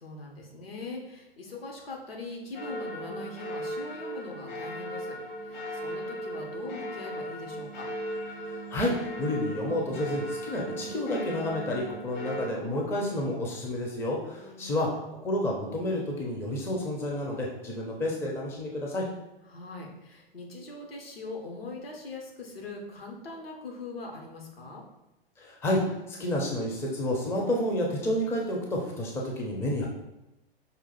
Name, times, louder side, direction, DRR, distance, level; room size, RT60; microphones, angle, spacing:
voice 1, 0.0-7.9 14.4-15.2 19.5-24.8, left 3 dB, 70° left, 0 dB, 1.2 m, -42 dB
sound 1, 2.5-12.5, equal, 50° left, 1.1 m, -37 dB
voice 2, 8.7-14.9 15.2-19.1 25.4-29.9, left 1 dB, 10° left, -1 dB, 0.5 m, -30 dB
5.2 x 2.4 x 3.9 m, 0.92 s
figure-of-eight pair, 105°, 31 cm